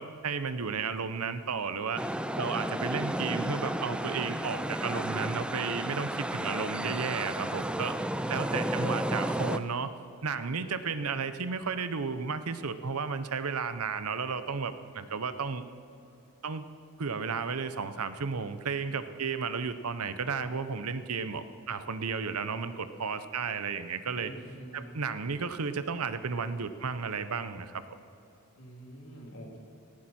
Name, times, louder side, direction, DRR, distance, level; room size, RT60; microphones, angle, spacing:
voice 1, 0.0-2.0 2.4-7.9 8.3-9.9 10.2-15.6 16.4-16.7 17.0-24.3 24.7-27.8, right 5 dB, 90° right, 12 dB, 0.8 m, -33 dB
sound 1, 2.0-9.6, right 1 dB, 5° right, 0.4 m, -32 dB
voice 2, 8.1-9.0 24.1-24.9 28.6-29.6, right 1 dB, 70° left, -1 dB, 3.2 m, -45 dB
18.0 x 15.5 x 4.4 m, 2.8 s
head